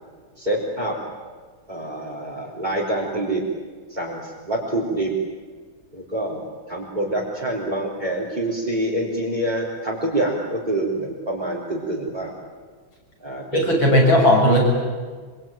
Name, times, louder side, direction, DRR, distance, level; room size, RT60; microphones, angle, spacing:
voice 1, 0.4-1.0 1.7-3.4 3.9-5.1 5.9-12.3 13.2-14.3, right 1 dB, 20° right, -5 dB, 4.2 m, -26 dB
voice 2, 13.5-14.7, equal, 75° left, 0 dB, 8.1 m, -16 dB
25.5 x 24.5 x 9.2 m, 1.5 s
omnidirectional pair, 2.2 m